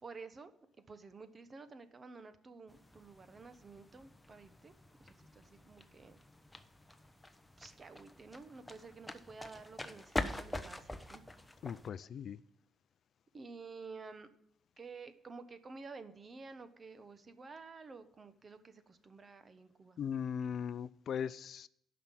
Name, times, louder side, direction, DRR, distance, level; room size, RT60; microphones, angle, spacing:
voice 1, 0.0-0.5 0.8-4.7 5.0-6.2 7.6-11.3 13.3-14.3 14.8-20.0, right 4 dB, 35° right, 1.1 m, -51 dB
sound 1, 2.7-11.9, left 1 dB, 10° left, 0.9 m, -45 dB
voice 2, 11.6-12.4 20.0-21.7, left 7 dB, 60° left, 0.4 m, -39 dB
11.0 x 5.9 x 7.5 m
cardioid pair, 90°, 0 cm